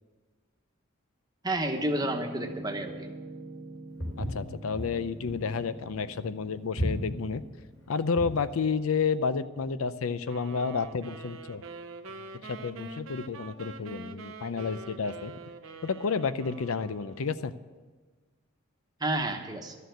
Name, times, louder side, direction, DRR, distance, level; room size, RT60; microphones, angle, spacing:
voice 1, 1.4-3.1 19.0-19.8, right 1 dB, 20° right, 3 dB, 1.1 m, -30 dB
Piano, 1.8-9.6, right 2 dB, 40° right, 0.7 m, -46 dB
Walk footsteps, 4.0-8.5, equal, 65° left, 4.2 m, -34 dB
voice 2, 4.2-7.4 7.9-11.6 12.0-12.1 12.4-15.3 15.8-17.5, left 5 dB, 85° left, 13 dB, 0.5 m, -31 dB
sound 1, 10.3-17.5, right 3 dB, 75° right, 0.8 m, -45 dB
13.0 x 6.7 x 9.3 m, 1.4 s
head